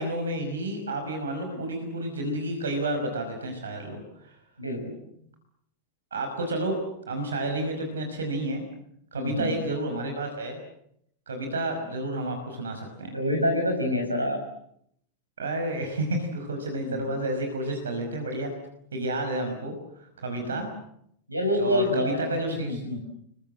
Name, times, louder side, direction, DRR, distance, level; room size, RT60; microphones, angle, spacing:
voice 1, 0.0-4.4 6.1-6.8 7.1-8.6 9.1-10.6 11.3-13.2 15.4-18.5 18.9-19.7 20.2-20.7 21.6-22.8, right 1 dB, 70° right, 5 dB, 5.4 m, -30 dB
voice 2, 4.6-4.9 9.1-9.5 13.1-14.4 16.8-17.0 20.4-20.7 21.3-23.0, left 1 dB, 85° right, 6 dB, 6.8 m, -27 dB
30.0 x 23.5 x 7.8 m, 0.73 s
figure-of-eight pair, 90°, 0 cm